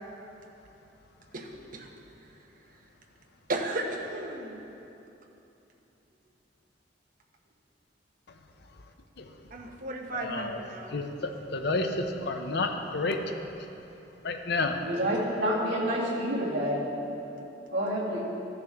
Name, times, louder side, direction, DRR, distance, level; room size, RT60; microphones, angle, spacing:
voice 1, 1.3-1.9 2.2-2.3 2.7-2.8 3.5-4.6 9.5-10.9, right 2 dB, 50° right, 1 dB, 0.9 m, -35 dB
voice 2, 10.2-10.6 10.9-13.2 14.2-14.8, left 3 dB, 65° left, 5 dB, 0.7 m, -30 dB
voice 3, 14.8-16.8 17.7-18.2, equal, 75° right, -5 dB, 2.0 m, -28 dB
14.0 x 6.7 x 3.5 m, 3.0 s
head